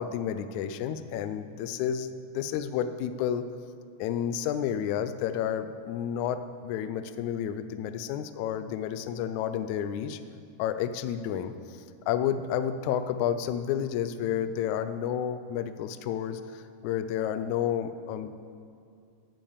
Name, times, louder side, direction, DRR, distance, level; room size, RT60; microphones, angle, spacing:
voice 1, 0.0-3.5 4.0-10.2 10.6-18.4, left 9 dB, 90° left, 11 dB, 1.6 m, -31 dB
12.0 x 5.4 x 8.3 m, 2.4 s
omnidirectional pair, 4.0 m